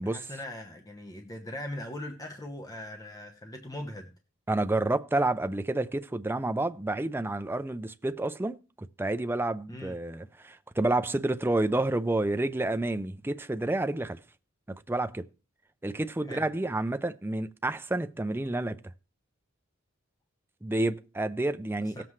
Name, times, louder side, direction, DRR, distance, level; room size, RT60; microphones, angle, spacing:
voice 1, 0.0-4.1 9.7-9.9 16.3-16.5 21.8-22.0, left 1 dB, 20° left, 1.0 m, -40 dB
voice 2, 4.5-14.2 14.7-15.3 15.8-18.8 20.6-22.0, right 2 dB, 10° right, 0.4 m, -29 dB
17.5 x 7.6 x 3.1 m
head